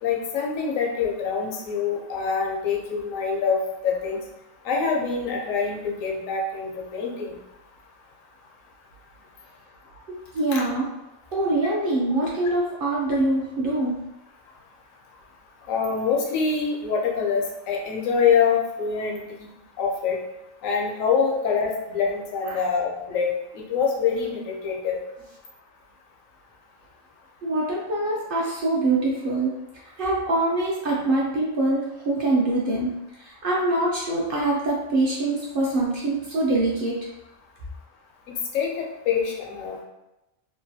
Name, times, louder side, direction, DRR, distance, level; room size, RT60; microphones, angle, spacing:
voice 1, 0.0-3.6 3.8-4.2 4.6-7.3 10.5-10.6 15.7-19.5 19.8-20.2 20.6-25.0 38.3-39.8, left 6 dB, 85° left, -1 dB, 1.0 m, -25 dB
voice 2, 10.1-10.9 11.3-14.0 22.5-22.6 27.4-29.6 30.0-32.9 33.2-36.9, right 2 dB, 60° right, -4 dB, 0.6 m, -24 dB
3.0 x 2.3 x 2.7 m, 0.95 s
omnidirectional pair, 1.3 m